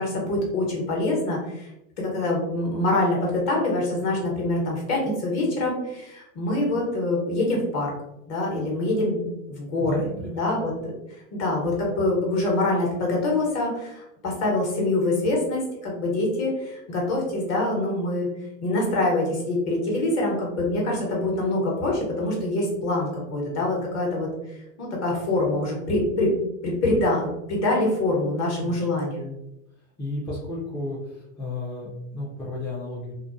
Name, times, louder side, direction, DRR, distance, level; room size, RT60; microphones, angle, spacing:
voice 1, 0.0-1.7 2.0-7.9 8.3-10.1 10.3-10.7 11.3-18.3 18.6-24.3 24.8-26.3 26.6-29.3, left 2 dB, 40° left, -3 dB, 1.0 m, -25 dB
voice 2, 9.8-10.5 28.5-28.8 30.0-33.1, left 2 dB, 5° left, -7 dB, 0.3 m, -33 dB
2.4 x 2.0 x 2.5 m, 0.90 s
hypercardioid pair, 105°, 42 cm